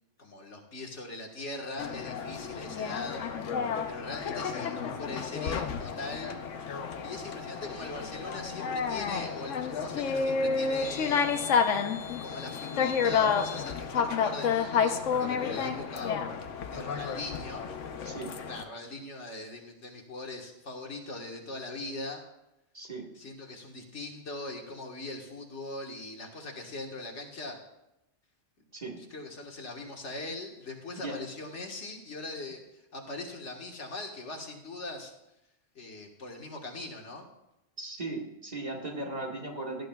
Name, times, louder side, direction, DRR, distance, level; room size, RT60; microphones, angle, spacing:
voice 1, 0.2-3.2 3.9-6.3 7.0-11.7 12.2-16.1 16.7-17.7 18.5-22.2 23.2-27.6 29.0-35.1 35.8-37.3, left 2 dB, 70° left, 1 dB, 1.8 m, -41 dB
sound 1, 1.8-18.6, left 6 dB, 90° left, 1.1 m, -30 dB
voice 2, 18.0-18.4 22.7-23.1 28.7-29.0 30.9-31.2 37.8-39.9, right 2 dB, 35° right, -1 dB, 1.7 m, -37 dB
17.5 x 11.0 x 2.3 m, 0.90 s
omnidirectional pair, 1.2 m